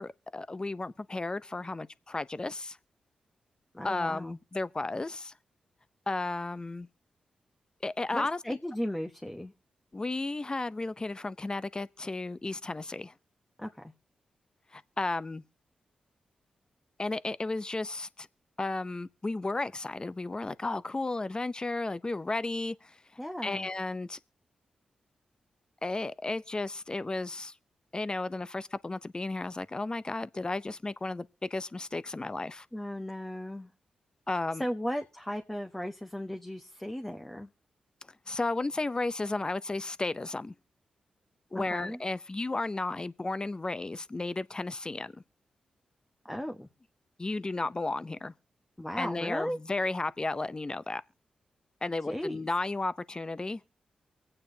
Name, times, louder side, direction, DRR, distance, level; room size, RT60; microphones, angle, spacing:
voice 1, 0.0-2.8 3.8-5.3 6.1-6.9 7.8-8.6 9.9-13.1 14.7-15.4 17.0-18.3 18.6-23.0 23.4-24.2 25.8-27.5 27.9-32.7 34.3-34.6 38.3-40.5 41.5-45.2 47.2-48.3 49.0-51.0 51.8-53.6, left 2 dB, 30° left, 0.6 m, -33 dB
voice 2, 3.7-4.4 8.1-9.5 13.6-13.8 23.2-23.7 32.7-33.7 34.6-37.5 41.5-42.0 46.2-46.7 48.8-49.6 52.1-52.4, equal, 10° left, 1.0 m, -36 dB
24.0 x 8.8 x 2.7 m
supercardioid pair, 45°, 3 cm